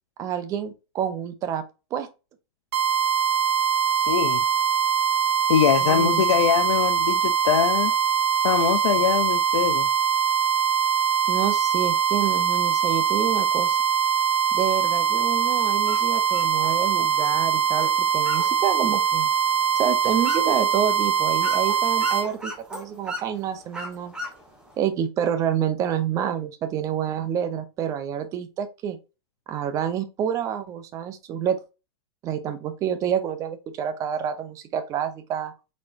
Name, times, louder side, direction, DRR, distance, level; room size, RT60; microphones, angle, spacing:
voice 1, 0.2-1.6 1.9-2.1 5.8-6.2 11.3-13.8 14.5-19.3 19.8-24.1 24.8-29.0 29.5-31.6 32.2-35.5, right 9 dB, 25° right, 0.6 m, -28 dB
sound 1, 2.7-22.3, right 8 dB, 60° right, 1.3 m, -22 dB
voice 2, 3.9-4.4 5.5-7.9 8.4-9.9, left 10 dB, 85° left, 0.6 m, -23 dB
sound 2, 15.8-24.8, left 1 dB, 5° right, 1.2 m, -40 dB
4.3 x 4.2 x 2.5 m
supercardioid pair, 155°, 14 cm